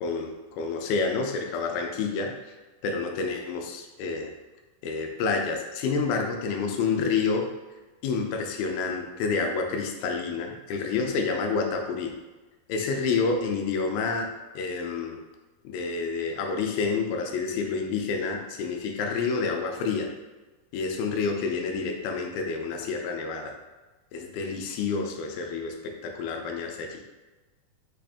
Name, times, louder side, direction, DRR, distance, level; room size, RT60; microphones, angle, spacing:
voice 1, 0.0-2.5 2.8-4.3 4.8-7.5 8.0-12.2 12.7-15.2 15.6-20.1 20.7-23.6 24.1-27.0, left 4 dB, 80° left, 3 dB, 2.4 m, -29 dB
5.7 x 2.5 x 3.4 m, 1.2 s
omnidirectional pair, 4.4 m